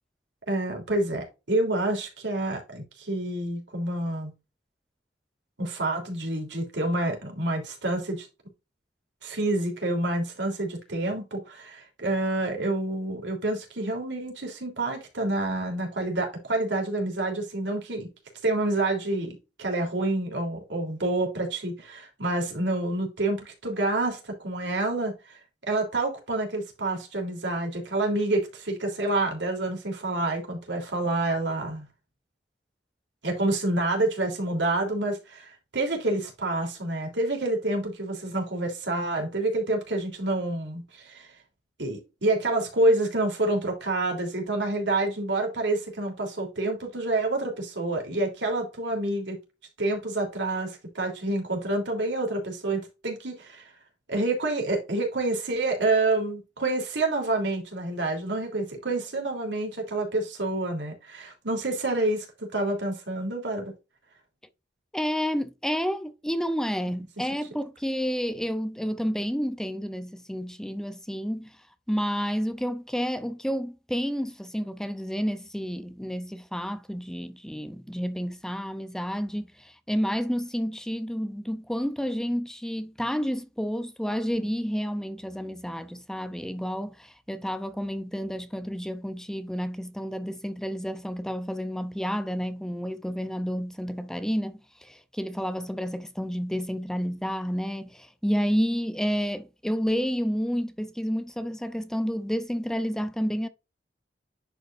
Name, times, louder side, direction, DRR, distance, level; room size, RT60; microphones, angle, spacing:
voice 1, 0.5-4.3 5.6-8.3 9.2-18.1 18.4-25.4 25.7-31.9 33.2-41.3 41.8-49.4 49.8-53.7 54.1-63.7, right 2 dB, 90° right, 3.2 m, -28 dB
voice 2, 64.9-71.6 71.9-103.5, equal, 5° left, 0.5 m, -30 dB
10.5 x 5.1 x 2.5 m
head